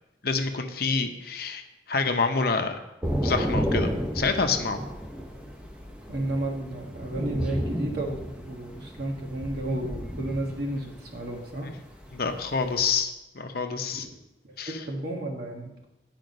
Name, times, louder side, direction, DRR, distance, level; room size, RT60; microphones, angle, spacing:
voice 1, 0.2-1.6 1.9-2.8 3.2-4.8 12.1-14.1 14.6-14.8, left 4 dB, 55° left, 6 dB, 0.7 m, -27 dB
Thunder / Rain, 3.0-13.0, equal, 5° right, 0.8 m, -32 dB
voice 2, 6.1-11.7 14.4-14.5 14.8-15.7, right 1 dB, 55° right, -1 dB, 1.6 m, -32 dB
9.3 x 5.1 x 5.2 m, 0.94 s
head